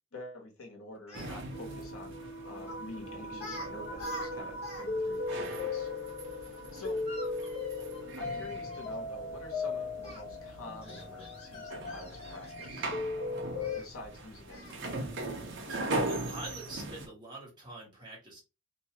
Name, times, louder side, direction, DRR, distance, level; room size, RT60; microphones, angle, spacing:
voice 1, 0.1-5.9 6.3-7.0 8.2-12.9 13.4-15.1, left 2 dB, 80° left, 0 dB, 1.1 m, -48 dB
Speech, 0.9-1.3 2.7-2.9 3.3-3.7 3.9-4.9 5.1-5.2 6.8-8.9 10.0-10.2 10.8-13.0 13.6-13.9 14.5-14.8, left 2 dB, 30° left, 1.1 m, -47 dB
sound 1, 1.1-17.1, right 2 dB, 60° right, 0.7 m, -41 dB
sound 2, 1.5-13.8, left 3 dB, 45° left, 0.8 m, -38 dB
voice 2, 16.0-18.4, right 2 dB, 20° right, -3 dB, 1.2 m, -45 dB
2.8 x 2.3 x 2.8 m, 0.28 s
head